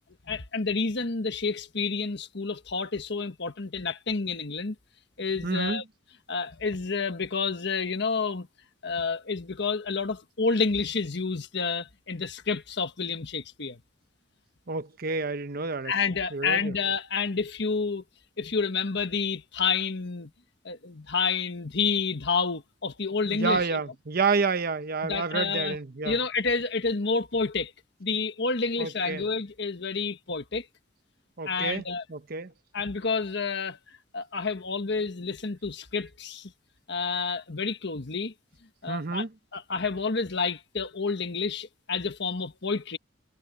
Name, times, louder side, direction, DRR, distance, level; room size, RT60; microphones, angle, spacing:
voice 1, 0.3-4.7 5.2-5.8 6.3-8.5 8.8-13.8 15.8-18.0 18.4-20.3 20.6-23.8 25.0-25.8 26.0-27.7 28.0-30.7 31.4-32.0 32.7-36.5 36.9-38.3 38.8-39.3 39.5-43.0, left 4 dB, 60° left, 1.4 m, -29 dB
voice 2, 5.4-5.8 14.7-15.9 16.3-16.7 23.3-26.2 28.8-29.3 31.4-32.5 38.9-39.3, right 4 dB, 50° right, 0.9 m, -29 dB
head